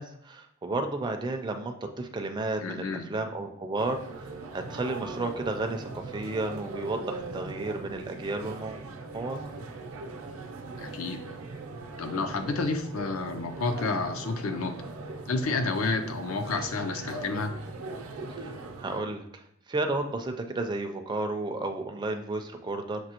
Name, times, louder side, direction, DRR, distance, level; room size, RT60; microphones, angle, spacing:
voice 1, 0.0-8.8 9.1-9.4 18.3-19.4 19.7-23.0, right 2 dB, 20° right, 4 dB, 0.4 m, -32 dB
voice 2, 2.6-3.0 10.8-11.2 12.0-14.7 15.3-17.5, left 3 dB, 75° left, 7 dB, 0.5 m, -30 dB
sound 1, 3.8-19.0, right 3 dB, 75° right, 0.6 m, -40 dB
6.0 x 2.7 x 2.9 m, 0.76 s
head